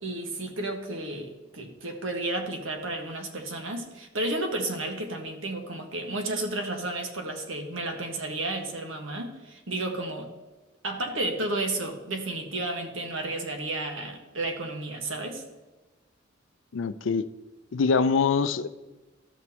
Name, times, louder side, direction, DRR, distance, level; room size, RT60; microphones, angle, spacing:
voice 1, 0.0-10.3 10.8-15.4, right 2 dB, 80° right, 4 dB, 1.4 m, -32 dB
voice 2, 16.7-17.2 17.7-18.7, left 5 dB, 70° left, 13 dB, 0.4 m, -24 dB
13.5 x 6.1 x 2.8 m, 1.1 s
head